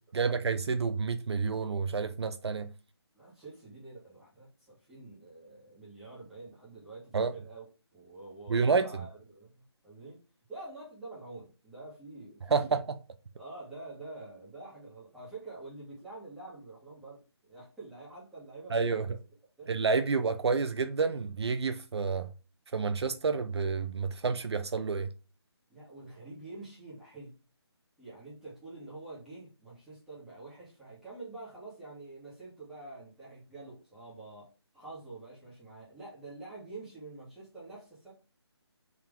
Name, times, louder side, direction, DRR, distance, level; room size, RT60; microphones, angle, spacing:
voice 1, 0.1-2.7 7.1-7.3 8.5-8.9 12.5-12.8 18.7-19.1 19.7-22.3 22.7-25.1, right 4 dB, 70° right, 0.5 m, -29 dB
voice 2, 3.1-7.7 7.9-10.2 10.5-12.8 13.3-19.2 19.6-19.7 25.7-27.3 28.0-34.5 34.7-38.1, right 2 dB, 5° right, 1.3 m, -47 dB
3.7 x 2.7 x 3.5 m
figure-of-eight pair, 165°, 14 cm